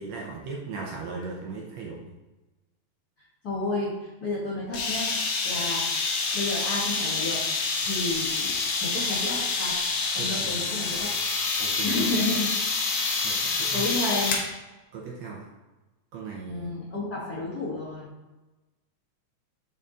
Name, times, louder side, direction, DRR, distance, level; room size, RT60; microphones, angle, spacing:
voice 1, 0.0-2.0 10.2-10.7 11.6-12.2 13.2-13.9 14.9-15.5 16.1-17.1, right 4 dB, 70° right, -2 dB, 1.8 m, -38 dB
voice 2, 3.4-5.8 6.3-7.4 7.8-9.7 10.1-11.1 11.8-12.5 13.7-14.3 16.5-18.1, left 2 dB, 45° left, -8 dB, 1.3 m, -31 dB
sound 1, 4.7-14.5, left 4 dB, 65° left, 1.6 m, -27 dB
6.9 x 4.0 x 3.8 m, 1.1 s
omnidirectional pair, 3.7 m